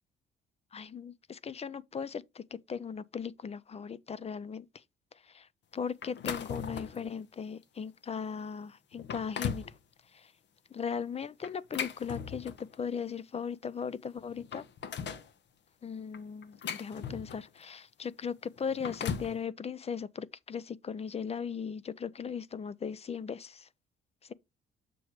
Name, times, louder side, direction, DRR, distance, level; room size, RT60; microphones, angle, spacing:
voice 1, 0.7-4.7 5.3-5.5 5.7-9.7 10.1-10.3 10.7-14.6 15.8-23.7, left 6 dB, 30° left, 0.5 m, -38 dB
sound 1, 6.0-7.1 7.6-7.8 8.4-8.5 8.9-9.7 11.4-12.8 13.8-13.9 14.2-15.3 16.1-17.6 18.6-19.4, left 7 dB, 65° left, 1.0 m, -38 dB
6.9 x 6.4 x 3.1 m
cardioid pair, 90°, 20 cm